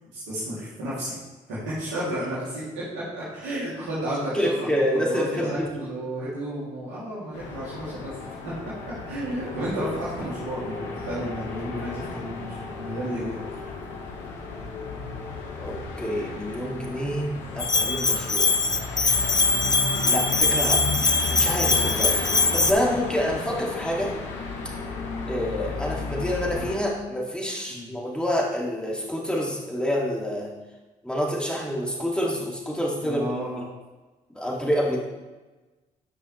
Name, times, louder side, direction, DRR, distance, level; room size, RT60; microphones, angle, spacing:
voice 1, 0.1-1.2 1.5-8.2 8.4-8.5 8.8-13.4 27.7-27.9 33.0-33.6, right 1 dB, 80° right, -9 dB, 2.7 m, -32 dB
voice 2, 4.3-5.8 15.6-18.5 20.1-24.2 25.3-30.5 31.0-33.2 34.3-35.0, equal, 5° left, -3 dB, 2.1 m, -27 dB
sound 1, 7.3-26.8, left 3 dB, 80° left, 1.1 m, -34 dB
Bell, 17.6-22.7, left 3 dB, 20° left, 0.7 m, -22 dB
10.5 x 5.4 x 3.2 m, 1.2 s
hypercardioid pair, 45°, 18 cm